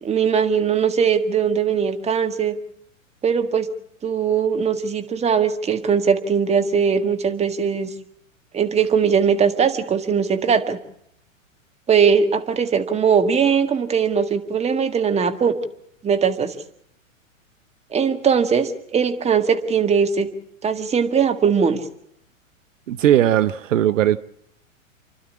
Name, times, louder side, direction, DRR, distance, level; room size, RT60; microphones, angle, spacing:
voice 1, 0.0-2.5 3.2-3.7 4.0-7.9 8.5-10.8 11.9-15.6 16.0-16.6 17.9-20.3 20.6-21.8, right 6 dB, 15° right, 8 dB, 1.8 m, -20 dB
voice 2, 22.9-24.2, right 11 dB, 70° right, 16 dB, 0.9 m, -18 dB
29.0 x 12.0 x 8.6 m, 0.71 s
hypercardioid pair, 115°, 40 cm